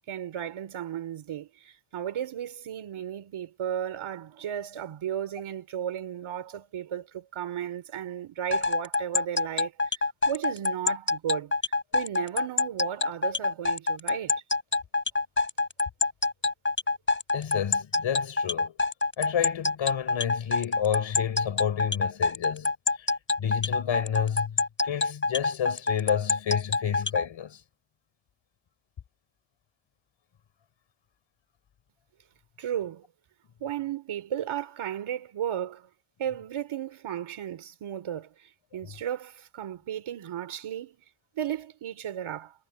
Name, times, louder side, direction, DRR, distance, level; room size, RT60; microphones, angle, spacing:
voice 1, 0.1-10.0 10.3-11.5 11.9-14.4 32.6-33.0 33.6-35.9 36.2-41.0 41.4-42.5, right 10 dB, 85° right, 3.6 m, -34 dB
sound 1, 8.5-27.3, left 3 dB, 25° left, 3.6 m, -26 dB
voice 2, 17.3-18.7 19.2-22.7 23.0-23.1 23.4-27.6, left 9 dB, 70° left, 4.5 m, -30 dB
cardioid pair, 85°, 47 cm